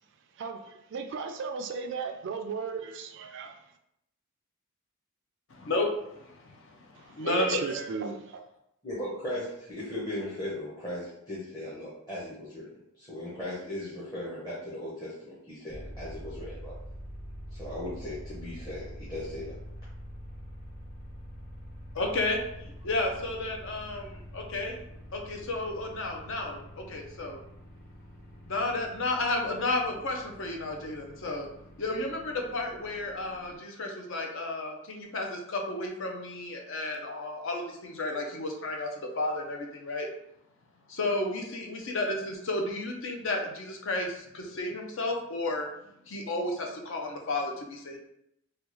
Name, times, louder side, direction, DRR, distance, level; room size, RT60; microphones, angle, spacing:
voice 1, 0.4-3.6 7.2-8.4, right 5 dB, 55° right, 5 dB, 0.3 m, -35 dB
voice 2, 5.5-7.7 21.9-24.8 25.1-27.4 28.5-31.5 31.8-38.9 39.2-40.1 40.9-45.7 46.1-48.0, left 2 dB, 60° left, 1 dB, 0.6 m, -32 dB
voice 3, 8.8-16.7 17.5-19.6, left 1 dB, 15° left, -10 dB, 0.8 m, -38 dB
sound 1, 15.7-33.6, equal, 40° left, 1.1 m, -45 dB
3.4 x 2.3 x 3.0 m, 0.80 s
head